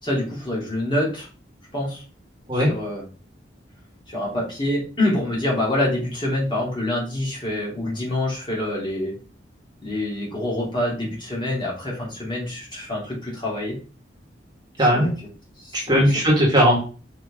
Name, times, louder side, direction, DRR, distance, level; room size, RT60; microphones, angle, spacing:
voice 1, 0.0-1.3 1.7-2.0 2.5-3.0 4.1-9.2 9.8-13.8 14.9-15.1 15.6-16.0, left 1 dB, 25° left, -5 dB, 3.3 m, -26 dB
voice 2, 14.8-15.1 15.7-16.8, equal, 20° right, -3 dB, 1.9 m, -18 dB
5.9 x 5.2 x 3.7 m, 0.35 s
head